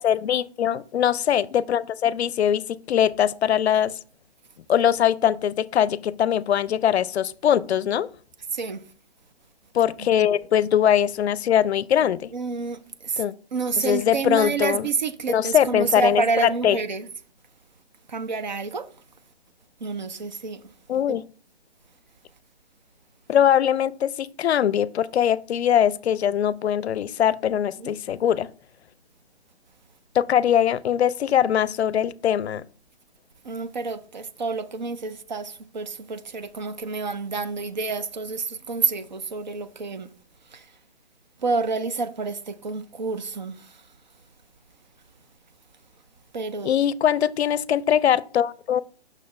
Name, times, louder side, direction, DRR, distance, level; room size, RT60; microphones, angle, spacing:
voice 1, 0.0-2.6 2.9-3.9 4.7-8.1 9.7-12.3 13.2-13.3 13.8-14.9 15.3-16.8 20.9-21.2 23.3-28.5 30.1-32.6 46.6-48.8, left 9 dB, 85° left, 0.5 m, -21 dB
voice 2, 12.3-13.2 13.5-17.1 18.1-18.9 19.8-20.6 21.1-21.2 27.8-27.9 33.4-40.1 40.5-40.6 41.4-43.7 46.3-46.7, right 4 dB, 45° right, 0.5 m, -28 dB
6.7 x 6.2 x 3.2 m
hypercardioid pair, 175°, 32 cm